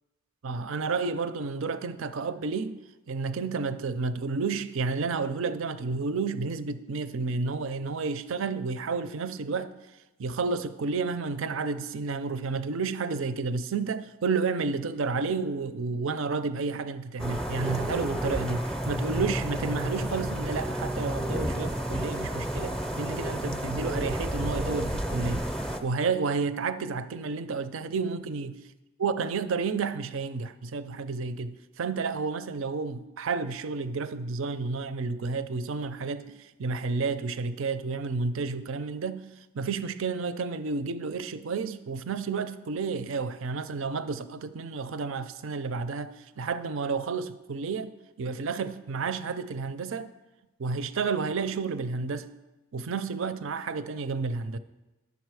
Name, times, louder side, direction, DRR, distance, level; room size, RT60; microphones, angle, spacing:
voice 1, 0.4-2.8 3.1-9.7 10.2-25.5 25.8-28.6 29.0-39.2 39.5-47.9 48.2-50.1 50.6-52.3 52.7-54.6, right 4 dB, 65° right, 0.5 m, -31 dB
sound 1, 17.2-25.8, equal, 5° left, 0.5 m, -31 dB
10.0 x 7.0 x 4.7 m
head